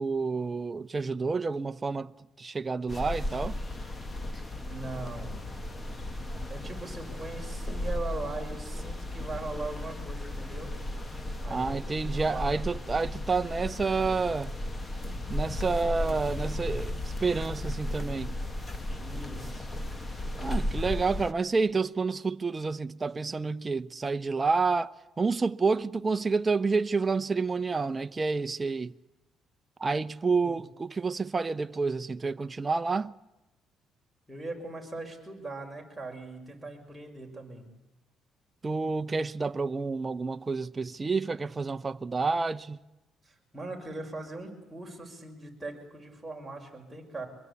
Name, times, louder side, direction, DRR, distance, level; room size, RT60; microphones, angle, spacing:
voice 1, 0.0-2.1 2.4-3.6 11.5-14.5 15.3-18.3 20.4-28.9 29.8-33.1 38.6-42.8, right 4 dB, 25° right, 0.9 m, -29 dB
sound 1, 2.9-21.3, left 1 dB, 20° left, 1.8 m, -35 dB
voice 2, 4.6-5.4 6.5-10.7 11.4-12.5 19.0-19.7 30.4-30.6 34.3-37.6 43.2-47.3, right 2 dB, 10° right, 6.2 m, -40 dB
25.5 x 22.5 x 8.6 m
cardioid pair, 110°, 0 cm